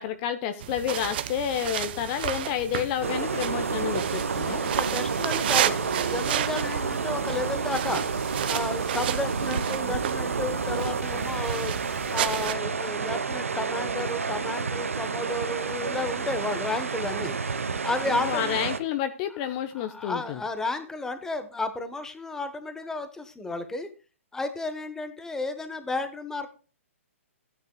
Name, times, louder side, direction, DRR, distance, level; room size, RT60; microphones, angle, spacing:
voice 1, 0.0-4.6 18.1-20.4, left 10 dB, 35° left, 9 dB, 0.8 m, -30 dB
sound 1, 0.6-12.5, right 11 dB, 45° right, 0.8 m, -32 dB
sound 2, 3.0-18.8, right 5 dB, 70° right, 0.9 m, -30 dB
voice 2, 4.6-8.1 8.4-11.7 12.1-17.4 17.8-18.6 19.8-23.9 24.3-26.5, left 2 dB, 5° left, 9 dB, 1.1 m, -32 dB
15.0 x 9.5 x 2.3 m, 0.35 s
figure-of-eight pair, 120°, 8 cm